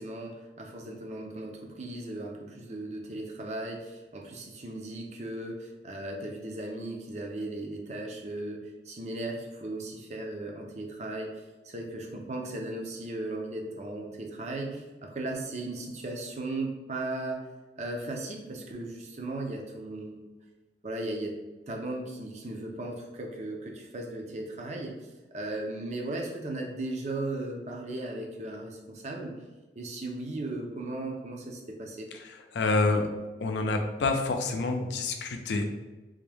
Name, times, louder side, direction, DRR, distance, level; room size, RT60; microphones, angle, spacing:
voice 1, 0.0-11.3 11.6-17.5 17.8-20.3 20.8-21.4 21.7-29.5 29.8-32.1, right 2 dB, 40° right, 0 dB, 0.6 m, -37 dB
voice 2, 32.2-33.1 33.4-35.7, left 3 dB, 80° left, 4 dB, 0.5 m, -28 dB
3.5 x 2.6 x 3.4 m, 1.2 s
head